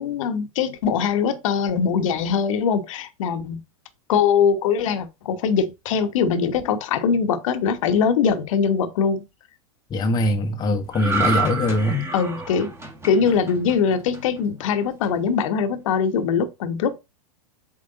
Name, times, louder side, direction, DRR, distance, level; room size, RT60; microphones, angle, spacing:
voice 1, 0.0-3.6 4.1-9.2 12.1-12.7 13.0-17.0, left 6 dB, 65° left, 1.1 m, -22 dB
voice 2, 9.9-12.1, left 2 dB, 20° left, 1.0 m, -22 dB
sound 1, 10.9-14.4 14.8-15.1, right 4 dB, 15° right, 1.7 m, -28 dB
7.8 x 3.4 x 3.9 m
hypercardioid pair, 115°, 19 cm